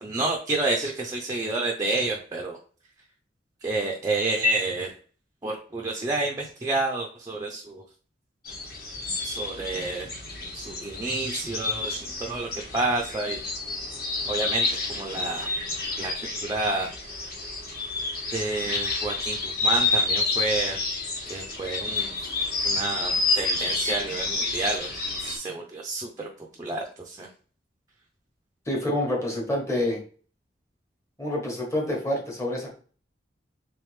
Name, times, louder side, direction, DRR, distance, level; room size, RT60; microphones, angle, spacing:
voice 1, 0.0-2.6 3.6-4.9 5.4-7.8 9.2-10.1 10.5-13.4 14.3-15.5 16.0-16.9 18.3-20.8 21.3-22.1 22.6-24.9 25.2-26.3 26.6-27.3, right 2 dB, 20° right, 0 dB, 0.4 m, -29 dB
sound 1, 8.4-25.4, left 3 dB, 55° left, 1.2 m, -29 dB
voice 2, 28.7-30.0 31.2-32.8, left 1 dB, 15° left, -1 dB, 1.1 m, -27 dB
3.4 x 3.3 x 3.2 m, 0.42 s
head